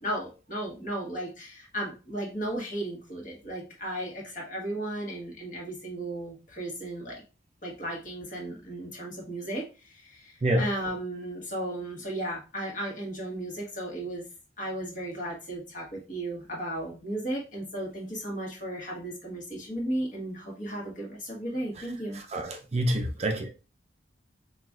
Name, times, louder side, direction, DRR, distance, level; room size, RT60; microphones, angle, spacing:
voice 1, 0.0-7.2 7.6-14.2 14.6-22.2, right 1 dB, 45° left, 1.4 m, -35 dB
voice 2, 22.3-23.5, right 1 dB, 35° right, 0.5 m, -27 dB
5.8 x 2.4 x 2.4 m
head